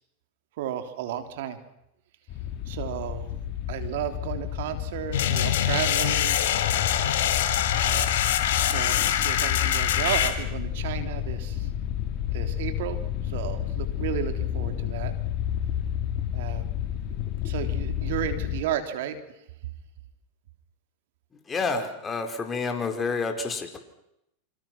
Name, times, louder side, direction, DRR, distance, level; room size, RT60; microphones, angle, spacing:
voice 1, 0.6-1.6 2.7-3.3 3.7-6.4 7.7-8.1 8.6-11.7 12.3-13.0 13.2-15.1 16.3-16.6 17.4-19.2, right 10 dB, 70° right, 7 dB, 3.5 m, -33 dB
sound 1, 2.3-18.6, left 10 dB, 50° left, 3.7 m, -31 dB
sound 2, 5.1-10.3, left 10 dB, 75° left, 3.5 m, -24 dB
voice 2, 21.5-23.8, left 4 dB, 20° left, 5 dB, 4.8 m, -29 dB
27.5 x 26.0 x 6.1 m, 0.80 s
hypercardioid pair, 110°, 0 cm